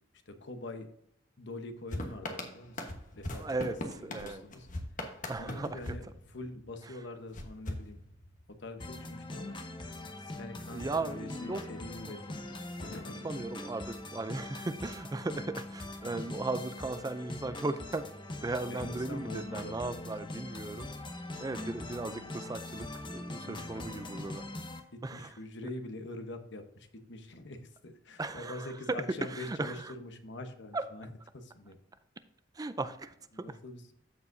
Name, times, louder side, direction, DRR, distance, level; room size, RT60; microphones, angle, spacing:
voice 1, 0.3-0.9 1.4-3.5 4.1-4.7 5.4-8.0 8.5-9.6 10.2-12.5 12.8-13.3 18.7-20.1 23.4-24.4 24.9-31.8 33.3-33.9, left 2 dB, 65° left, 7 dB, 1.0 m, -44 dB
sound 1, 1.9-6.8 7.3-8.6, left 1 dB, 45° left, 1.2 m, -41 dB
voice 2, 3.3-4.4 5.3-5.9 10.7-11.6 13.2-18.0 18.4-20.9 21.4-24.4 25.0-25.3 28.2-29.9 30.7-30.8 32.6-33.6, right 2 dB, 20° right, 12 dB, 0.4 m, -37 dB
sound 2, 8.8-24.8, left 2 dB, 25° left, 0.9 m, -42 dB
14.0 x 4.8 x 2.6 m, 0.71 s
head